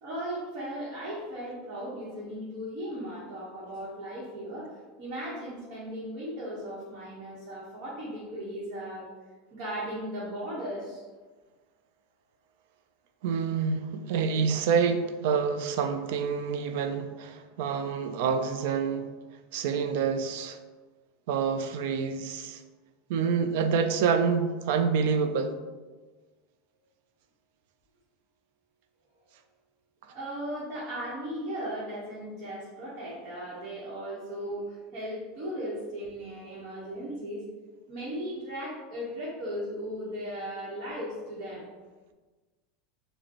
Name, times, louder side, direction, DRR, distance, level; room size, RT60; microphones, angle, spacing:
voice 1, 0.0-4.7 5.0-9.1 9.5-11.0 30.1-37.4 37.9-41.6, equal, 50° right, -8 dB, 1.2 m, -37 dB
voice 2, 13.2-19.1 19.5-20.6 21.3-22.6 23.1-25.6, right 6 dB, 70° right, 8 dB, 0.3 m, -27 dB
4.9 x 2.2 x 2.9 m, 1.3 s
supercardioid pair, 140°, 0 cm